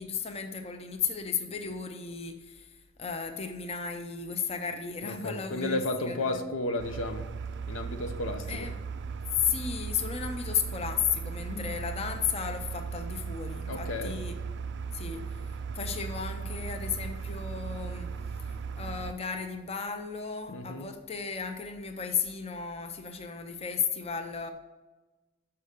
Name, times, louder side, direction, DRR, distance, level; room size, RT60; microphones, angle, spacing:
voice 1, 0.0-6.5 8.5-8.8 9.4-14.4 14.9-15.4 15.7-24.5, left 6 dB, 30° left, 6 dB, 0.6 m, -34 dB
voice 2, 5.0-7.3 7.7-8.7 11.5-11.7 13.7-14.2 20.5-20.9, left 2 dB, 80° left, 6 dB, 0.7 m, -33 dB
sound 1, 6.8-19.1, right 5 dB, 60° right, 0.4 m, -37 dB
6.8 x 5.6 x 5.1 m, 1.2 s
head